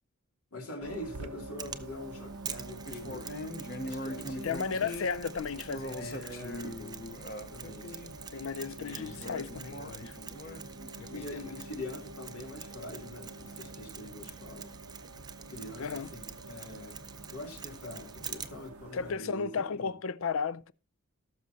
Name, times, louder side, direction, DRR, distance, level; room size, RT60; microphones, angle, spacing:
voice 1, 0.5-3.3 3.8-4.9 5.9-7.0 7.3-8.0 8.9-9.1 10.4-10.6 11.1-14.7 15.5-17.0 17.3-19.5, left 1 dB, 80° left, 2.8 m, -44 dB
sound 1, 0.8-19.2, right 2 dB, 75° right, 0.7 m, -47 dB
Mechanisms, 1.6-18.7, right 7 dB, 20° right, 0.5 m, -47 dB
sound 2, 2.9-8.1 8.8-11.1, left 1 dB, 45° left, 1.0 m, -41 dB
voice 2, 4.4-6.3 8.3-10.2 11.0-11.4 15.8-16.1 18.9-20.7, left 5 dB, 60° left, 0.5 m, -35 dB
18.5 x 6.4 x 2.8 m
head